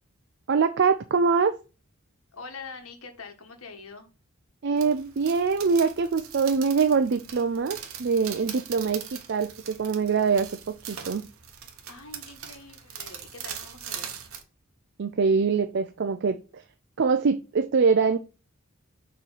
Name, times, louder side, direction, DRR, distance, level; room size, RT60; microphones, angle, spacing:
voice 1, 0.5-1.6 4.6-11.2 15.0-16.6 17.0-18.2, right 5 dB, 55° right, 8 dB, 0.5 m, -24 dB
voice 2, 2.3-4.1 11.9-14.2, left 4 dB, 85° left, 6 dB, 1.5 m, -44 dB
sound 1, 4.8-14.4, right 8 dB, 90° right, 1.1 m, -41 dB
6.7 x 3.2 x 5.6 m, 0.31 s
head